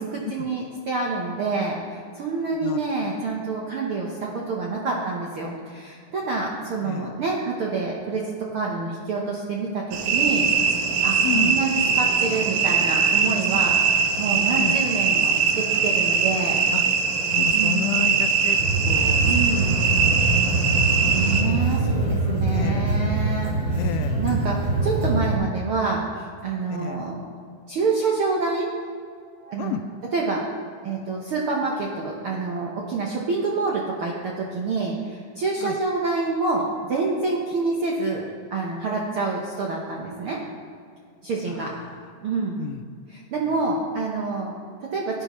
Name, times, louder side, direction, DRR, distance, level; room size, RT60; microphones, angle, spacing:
voice 1, 0.0-10.5 11.0-16.6 17.5-17.8 19.2-19.7 21.1-23.9 24.2-27.2 27.7-28.7 29.4-29.7 30.1-30.4 30.8-38.2 38.5-40.4 41.2-41.7 42.2-42.6 43.1-45.2, right 4 dB, 65° right, -2 dB, 1.3 m, -27 dB
voice 2, 6.8-7.1 11.2-11.6 14.6-14.8 16.7-16.8 17.3-18.6 18.8-20.0 20.3-20.9 22.5-22.9 23.8-24.2 26.7-27.1 29.6-29.8 35.6-35.8 41.5-42.0 42.6-42.8, left 10 dB, 80° left, 9 dB, 1.9 m, -32 dB
sound 1, 9.9-21.4, right 6 dB, 85° right, 2.6 m, -21 dB
sound 2, 18.6-25.4, right 2 dB, 15° right, 2.5 m, -24 dB
16.0 x 10.5 x 3.1 m, 2.3 s
omnidirectional pair, 3.8 m